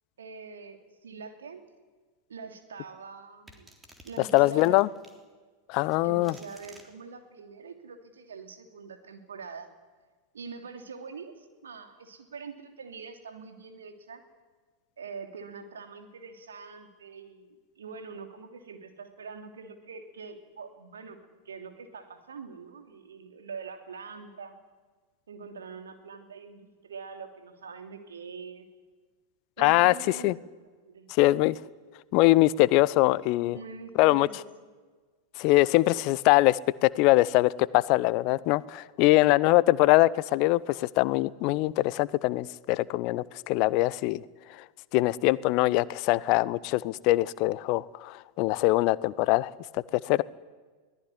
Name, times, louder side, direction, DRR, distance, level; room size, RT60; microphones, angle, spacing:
voice 1, 0.2-1.7 2.3-3.7 4.0-4.8 6.0-9.7 10.3-14.2 15.0-21.2 21.4-24.6 25.3-28.7 29.6-30.3 30.9-31.1 33.5-34.4, right 5 dB, 65° right, 6 dB, 3.0 m, -44 dB
sound 1, 3.5-5.2 5.9-6.9, right 2 dB, 15° right, 3.6 m, -53 dB
voice 2, 4.2-4.9 5.7-6.3 29.6-30.3 31.1-31.6 32.1-33.6 34.0-34.3 35.4-44.2 44.5-44.6 44.9-50.2, left 19 dB, 45° left, 21 dB, 0.6 m, -23 dB
23.0 x 17.5 x 9.9 m, 1.4 s
figure-of-eight pair, 90°, 0 cm